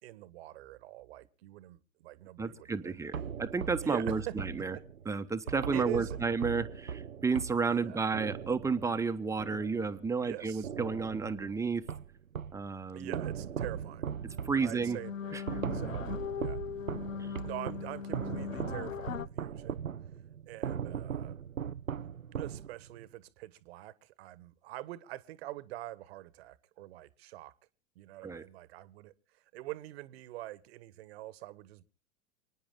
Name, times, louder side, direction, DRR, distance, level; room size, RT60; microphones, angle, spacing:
voice 1, 0.0-3.0 3.8-4.4 4.7-4.8 5.7-6.2 7.7-8.0 10.2-10.7 12.9-14.1 14.6-15.4 15.7-16.6 17.4-19.8 20.5-21.4 22.3-27.5 27.9-29.1 29.5-31.8, right 16 dB, 50° right, 1.4 m, -44 dB
voice 2, 2.4-4.8 5.0-11.9 12.5-13.2 14.4-15.0 15.3-15.4 17.2-17.3 28.2-28.4, right 4 dB, 10° right, 1.1 m, -32 dB
sound 1, 3.1-10.3 10.6-12.7 13.1-23.0, right 8 dB, 90° right, 0.6 m, -39 dB
sound 2, 13.9-14.0 14.3-19.3, left 8 dB, 80° left, 0.7 m, -40 dB
29.0 x 10.0 x 3.7 m
figure-of-eight pair, 95°, 39 cm